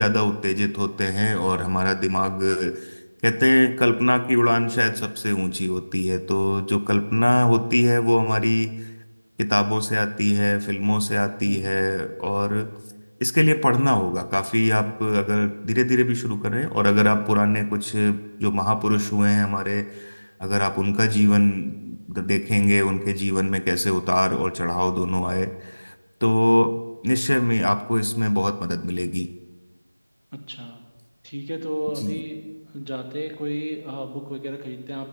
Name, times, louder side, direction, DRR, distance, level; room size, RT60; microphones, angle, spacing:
voice 1, 0.0-8.7 9.4-12.7 13.2-25.9 26.2-29.3 32.0-32.2, left 1 dB, 35° left, 13 dB, 0.4 m, -22 dB
voice 2, 30.5-30.8 31.2-32.4 32.7-35.1, equal, 75° right, 6 dB, 2.0 m, -31 dB
15.5 x 8.4 x 6.8 m, 1.2 s
figure-of-eight pair, 180°, 0 cm